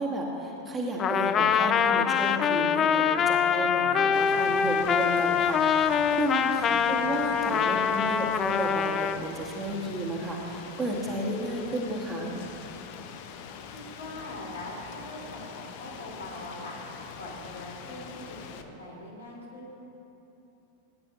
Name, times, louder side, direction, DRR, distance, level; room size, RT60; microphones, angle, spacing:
voice 1, 0.0-12.3, right 1 dB, 15° right, -2 dB, 1.6 m, -32 dB
Trumpet, 1.0-9.2, left 7 dB, 25° left, 0.4 m, -24 dB
Rain, 4.1-18.6, left 7 dB, 50° left, 0.7 m, -44 dB
voice 2, 6.6-7.0 13.7-16.8 17.2-19.7, left 1 dB, 70° left, -4 dB, 3.0 m, -42 dB
18.5 x 9.7 x 3.0 m, 2.9 s
figure-of-eight pair, 90°, 0 cm